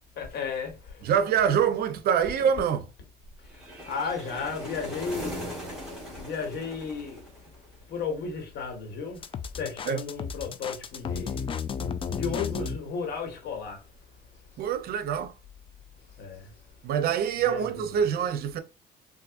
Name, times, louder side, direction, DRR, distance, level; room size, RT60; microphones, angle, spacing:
voice 1, 0.2-1.6 2.4-2.5 3.5-5.6 6.1-7.3 7.9-11.5 12.1-13.8 14.6-14.7 16.2-16.5 17.3-18.0, left 5 dB, 70° left, 1.5 m, -35 dB
voice 2, 1.0-2.8 9.9-10.0 14.6-15.3 16.8-18.6, right 8 dB, 65° right, 0.6 m, -25 dB
sound 1, 3.5-7.7, equal, 5° right, 2.0 m, -39 dB
sound 2, 9.2-12.8, left 6 dB, 30° left, 0.4 m, -33 dB
3.8 x 2.5 x 2.5 m
cardioid pair, 110°, 17 cm